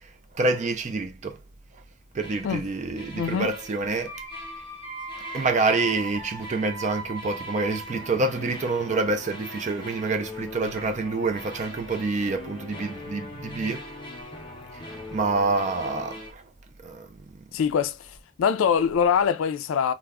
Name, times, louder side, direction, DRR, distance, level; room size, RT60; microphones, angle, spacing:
voice 1, 0.3-1.4 2.1-4.1 5.1-13.9 15.1-16.4 16.8-17.1 17.3-17.4, right 3 dB, 35° right, 0.4 m, -27 dB
sound 1, 2.2-2.6 3.0-16.3, equal, 25° left, 0.5 m, -40 dB
voice 2, 3.2-3.5 17.5-18.1 18.4-19.9, left 7 dB, 85° left, 0.3 m, -23 dB
2.2 x 2.0 x 3.4 m
head